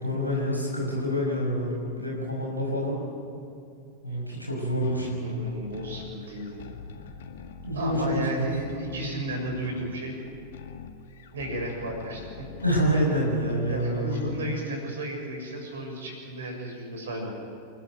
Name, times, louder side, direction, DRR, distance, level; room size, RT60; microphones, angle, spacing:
voice 1, 0.0-3.0 4.0-5.4 7.6-8.5 12.6-14.2, equal, 90° right, -2 dB, 5.8 m, -27 dB
sound 1, 4.8-14.4, left 6 dB, 60° left, 1.9 m, -43 dB
voice 2, 5.2-6.6 7.7-10.2 11.3-12.5 13.7-17.3, right 1 dB, 65° right, 2 dB, 6.9 m, -34 dB
29.0 x 13.0 x 9.4 m, 2.5 s
figure-of-eight pair, 90°, 0 cm